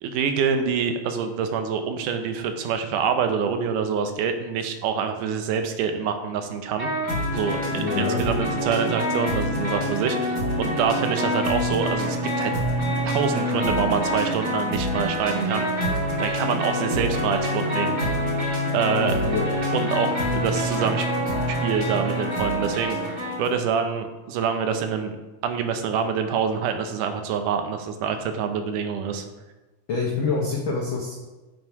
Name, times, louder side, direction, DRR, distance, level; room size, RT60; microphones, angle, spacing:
voice 1, 0.0-6.9 7.3-12.5 13.0-15.7 16.2-17.9 18.7-19.2 19.7-21.1 21.5-25.2 25.4-29.2, right 6 dB, 80° right, 7 dB, 2.2 m, -26 dB
sound 1, 6.8-23.5, equal, 30° right, 1.7 m, -26 dB
voice 2, 7.7-8.2 19.0-19.5 29.9-31.1, left 4 dB, 85° left, -2 dB, 1.1 m, -26 dB
7.8 x 5.5 x 4.7 m, 1.1 s
omnidirectional pair, 3.8 m